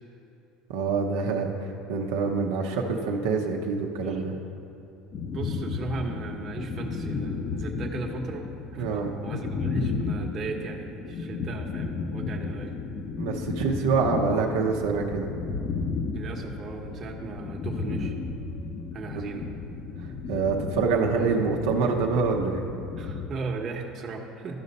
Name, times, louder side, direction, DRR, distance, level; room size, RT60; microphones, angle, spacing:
voice 1, 0.7-4.4 8.8-9.1 13.2-15.3 20.3-22.6, right 4 dB, 90° right, 1 dB, 0.8 m, -26 dB
sound 1, 5.1-23.3, left 4 dB, 45° left, 0.6 m, -33 dB
voice 2, 5.3-12.7 16.1-18.2 18.9-19.5 23.0-24.6, right 4 dB, 40° right, 1 dB, 1.0 m, -36 dB
13.0 x 5.2 x 4.1 m, 2.8 s
supercardioid pair, 115°, 0 cm